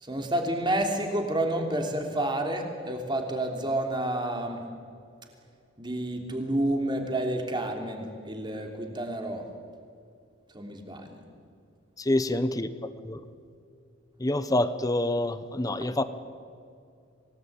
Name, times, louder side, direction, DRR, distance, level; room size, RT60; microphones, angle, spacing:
voice 1, 0.0-4.6 5.8-9.4 10.5-11.2 15.8-15.9, right 1 dB, 25° right, 4 dB, 3.2 m, -29 dB
voice 2, 12.0-12.7 13.0-13.2 14.2-16.0, left 1 dB, 20° left, 12 dB, 1.0 m, -26 dB
27.5 x 18.5 x 8.8 m, 2.4 s
head